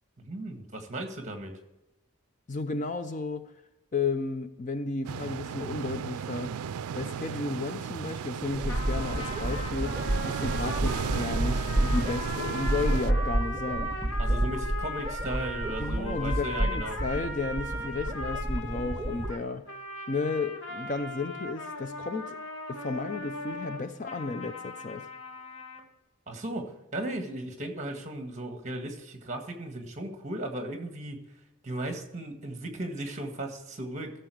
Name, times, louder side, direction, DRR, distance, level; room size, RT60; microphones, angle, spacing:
voice 1, 0.2-1.5 14.2-17.0 26.3-26.7 26.9-31.2 31.6-34.1, right 1 dB, 30° right, 5 dB, 1.7 m, -36 dB
voice 2, 2.5-3.5 3.9-6.6 6.9-14.0 15.8-19.7 20.1-22.4 22.7-25.1, left 3 dB, 35° left, 10 dB, 0.5 m, -33 dB
sound 1, 5.0-13.1, right 7 dB, 90° right, 0.4 m, -35 dB
sound 2, 8.5-19.3, right 1 dB, 15° right, 0.6 m, -30 dB
sound 3, 8.7-25.8, left 1 dB, 65° left, 1.7 m, -38 dB
15.0 x 7.0 x 4.8 m, 0.96 s
head